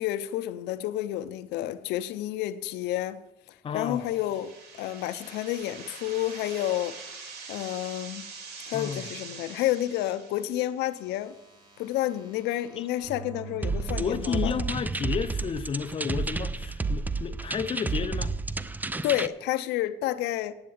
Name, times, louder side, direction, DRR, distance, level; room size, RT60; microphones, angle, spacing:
voice 1, 0.0-3.2 3.5-7.0 7.5-8.2 8.7-11.3 11.8-14.5 19.0-20.5, left 13 dB, 85° left, 0.6 m, -30 dB
voice 2, 3.6-4.1 8.7-9.1 12.8-12.9 13.9-18.3, left 7 dB, 30° left, 0.6 m, -32 dB
sound 1, 3.9-10.8, right 5 dB, 75° right, 2.7 m, -44 dB
sound 2, 10.9-14.8 15.5-15.6, right 5 dB, 25° right, 3.1 m, -45 dB
sound 3, 13.6-19.3, right 3 dB, 10° right, 0.4 m, -31 dB
8.8 x 8.4 x 8.0 m
cardioid pair, 110°, 17 cm